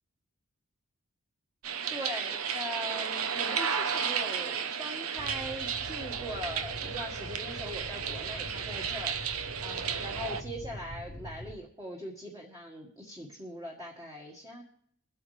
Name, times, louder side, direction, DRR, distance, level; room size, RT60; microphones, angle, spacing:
sound 1, 1.6-10.4, right 7 dB, 75° right, 0.9 m, -33 dB
voice 1, 1.9-14.6, equal, 15° right, -2 dB, 1.7 m, -41 dB
sound 2, 5.2-11.5, left 1 dB, 45° left, 1.1 m, -44 dB
23.5 x 8.6 x 3.3 m, 0.68 s
head